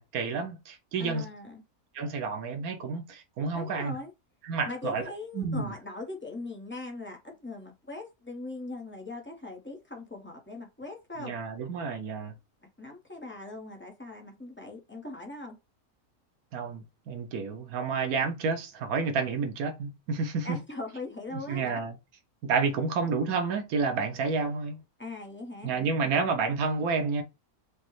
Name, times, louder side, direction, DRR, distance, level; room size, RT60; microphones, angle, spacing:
voice 1, 0.0-1.3 1.9-4.0 4.4-5.0 5.3-5.7 11.2-12.3 16.5-20.6 21.3-22.0 22.4-24.8 25.6-27.2, right 4 dB, 80° right, 1.2 m, -30 dB
voice 2, 1.0-1.6 3.5-4.1 4.6-11.3 12.8-15.5 20.4-21.8 22.7-22.8 25.0-25.7, left 2 dB, 10° left, 0.6 m, -40 dB
5.1 x 2.1 x 3.0 m
omnidirectional pair, 1.5 m